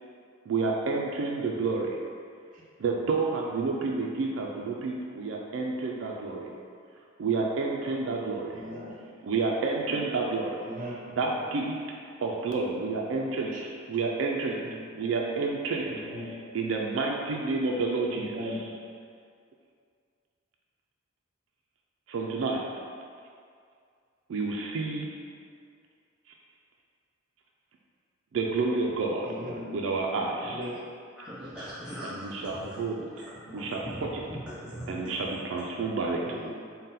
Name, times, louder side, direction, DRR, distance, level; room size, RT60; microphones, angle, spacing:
voice 1, 0.5-2.0 2.8-6.5 7.2-8.6 9.2-10.6 11.1-11.9 12.2-13.6 13.9-14.7 14.9-18.8 22.1-22.7 24.3-25.2 28.3-29.3 29.7-30.7 32.0-33.2 33.5-34.2 34.9-36.2, right 3 dB, 70° right, -1 dB, 0.3 m, -30 dB
voice 2, 8.5-8.9 10.6-10.9 14.6-14.8 15.9-16.3 18.2-18.6 29.3-29.6 30.5-30.8 34.6-34.7 36.2-36.5, equal, 40° right, -6 dB, 0.7 m, -38 dB
voice 3, 31.2-35.2, equal, 5° right, -10 dB, 0.4 m, -42 dB
3.8 x 2.1 x 4.0 m, 2.2 s
head